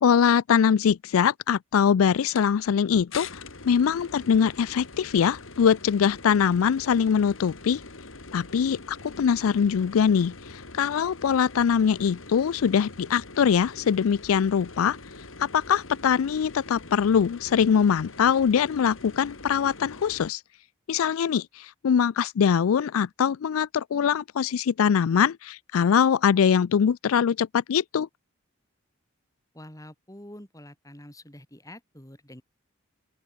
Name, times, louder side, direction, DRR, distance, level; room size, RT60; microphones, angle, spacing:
voice 1, 0.0-7.8 8.3-15.0 15.4-20.4 20.9-28.1, left 7 dB, 90° left, 0.4 m, -23 dB
sound 1, 2.3-2.5 3.1-20.3, left 3 dB, 70° left, 3.1 m, -44 dB
voice 2, 29.5-32.4, left 1 dB, 15° left, 5.5 m, -46 dB
open air
head